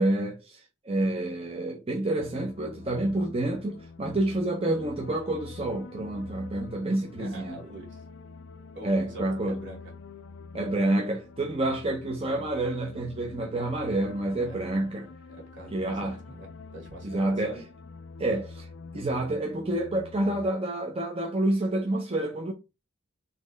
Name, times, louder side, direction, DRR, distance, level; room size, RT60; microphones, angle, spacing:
voice 1, 0.0-7.6 8.8-9.6 10.5-15.1 15.7-16.2 17.0-17.6 18.2-18.7 18.9-22.5, right 1 dB, 30° right, 0.7 m, -28 dB
sound 1, 2.2-20.5, left 4 dB, 60° left, 0.4 m, -46 dB
voice 2, 7.2-8.0 8.7-9.9 14.4-14.6 15.5-17.6, right 1 dB, 60° right, 2.2 m, -44 dB
4.2 x 3.1 x 3.9 m
head